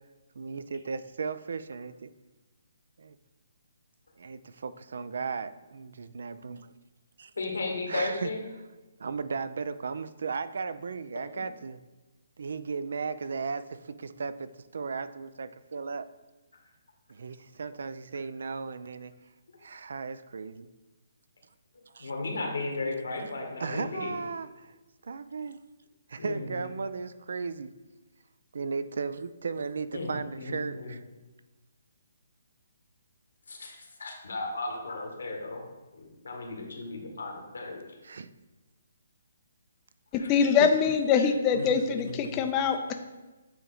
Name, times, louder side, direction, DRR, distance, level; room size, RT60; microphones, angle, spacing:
voice 1, 0.4-2.1 3.0-3.2 4.2-6.7 7.2-7.3 7.9-8.3 9.0-11.8 12.4-14.5 14.7-16.1 17.1-19.1 19.6-20.7 21.9-22.1 23.6-24.7 25.0-25.6 26.1-27.7 28.5-31.0 38.0-38.3 40.6-40.7, right 5 dB, 70° right, 14 dB, 0.4 m, -35 dB
voice 2, 7.4-8.4 22.0-24.2 26.2-26.6 29.9-31.0 33.5-35.6 35.9-37.8 40.2-40.3 41.2-41.3 41.5-42.4, left 2 dB, 80° left, 1 dB, 1.5 m, -35 dB
voice 3, 40.1-42.9, left 6 dB, 20° left, 6 dB, 0.4 m, -24 dB
8.2 x 3.0 x 3.9 m, 1.1 s
hypercardioid pair, 155°, 0 cm